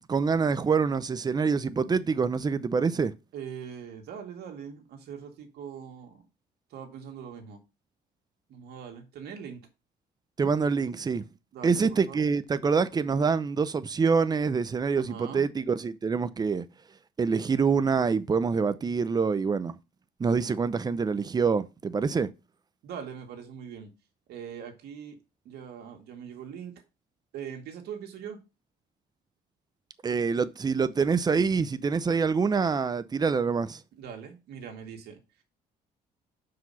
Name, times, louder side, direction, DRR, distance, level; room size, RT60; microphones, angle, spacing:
voice 1, 0.0-3.1 10.4-11.2 11.6-16.6 17.2-19.8 20.2-22.3 30.0-33.8, right 5 dB, 25° right, 0.6 m, -26 dB
voice 2, 3.3-6.3 6.7-7.6 8.5-9.7 11.5-12.2 15.0-15.5 22.8-23.9 24.3-25.2 25.5-26.7 27.3-28.4 34.0-35.2, right 7 dB, 70° right, 2.1 m, -41 dB
5.9 x 4.9 x 5.6 m
cardioid pair, 110°, 17 cm